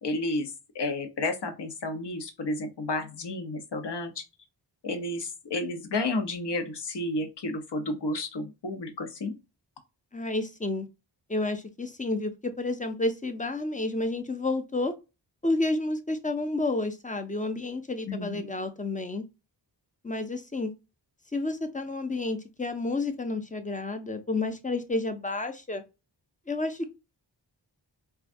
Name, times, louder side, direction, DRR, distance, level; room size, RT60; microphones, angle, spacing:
voice 1, 0.0-0.5 0.7-4.2 4.8-9.3 18.1-18.5, left 2 dB, 65° left, 0.9 m, -31 dB
voice 2, 10.1-10.9 11.3-14.9 15.4-19.2 20.0-20.7 21.3-25.8 26.5-26.9, left 2 dB, 20° left, 0.5 m, -30 dB
4.6 x 2.3 x 2.5 m
wide cardioid pair, 105°, 44 cm